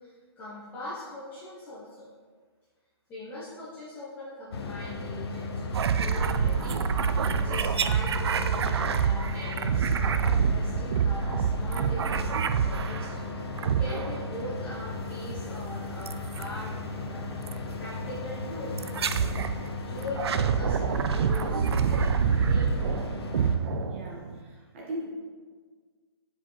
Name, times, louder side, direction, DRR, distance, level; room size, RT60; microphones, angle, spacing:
voice 1, 0.0-2.1 3.1-17.5 17.8-18.7 19.1-19.3 19.9-22.1 22.5-22.8, left 1 dB, 10° left, -8 dB, 0.6 m, -41 dB
sound 1, 4.5-23.6, left 3 dB, 70° left, 0.9 m, -36 dB
sound 2, 5.7-13.2 13.6-14.4 16.1-16.5 17.5-17.6 18.8-19.6 20.0-24.4, right 7 dB, 70° right, 0.4 m, -27 dB
voice 2, 23.8-25.1, right 1 dB, 25° right, -3 dB, 1.2 m, -39 dB
7.4 x 4.7 x 3.1 m, 1.6 s
hypercardioid pair, 175°, 14 cm